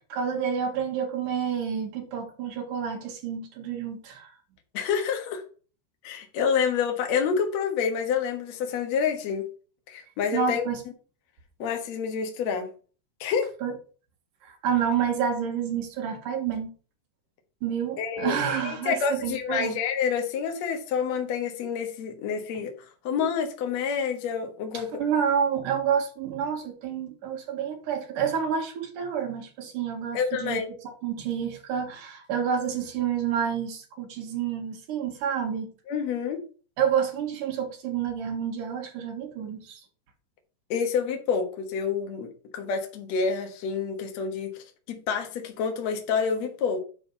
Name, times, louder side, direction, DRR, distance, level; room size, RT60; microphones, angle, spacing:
voice 1, 0.1-4.3 10.3-10.8 13.6-13.7 14.4-16.7 17.6-19.7 24.7-35.7 36.8-39.8, right 7 dB, 90° right, 3.3 m, -29 dB
voice 2, 4.7-5.4 6.0-9.4 9.9-10.7 11.6-12.7 13.2-13.5 18.0-22.7 23.0-24.9 30.1-30.7 35.9-36.4 40.7-46.8, left 6 dB, 60° left, 2.5 m, -28 dB
10.0 x 4.4 x 5.5 m
omnidirectional pair, 3.6 m